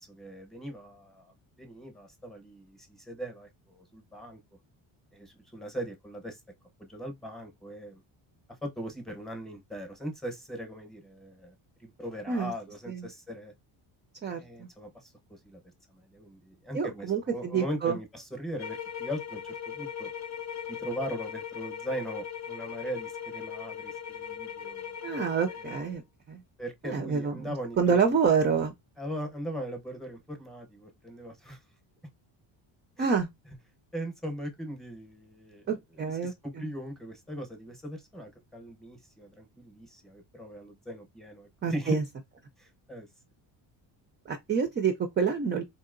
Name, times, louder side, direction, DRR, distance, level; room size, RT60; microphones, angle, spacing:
voice 1, 0.1-4.4 5.1-6.4 6.8-8.0 8.6-11.5 11.8-13.5 14.3-15.6 15.9-20.1 20.7-25.1 25.5-25.7 26.6-28.2 29.0-31.6 33.0-33.2 33.9-35.6 35.9-42.0 42.6-43.1, equal, ahead, 0.7 m, -39 dB
voice 2, 14.2-14.7 16.7-18.0 25.0-26.0 26.3-26.4 26.8-28.7 33.0-33.3 35.7-36.3 36.6-36.7 41.6-42.0 44.3-45.6, right 6 dB, 25° right, 0.3 m, -27 dB
sound 1, 18.6-26.0, left 8 dB, 35° left, 0.6 m, -39 dB
4.1 x 2.8 x 2.5 m
cardioid pair, 160°, 46 cm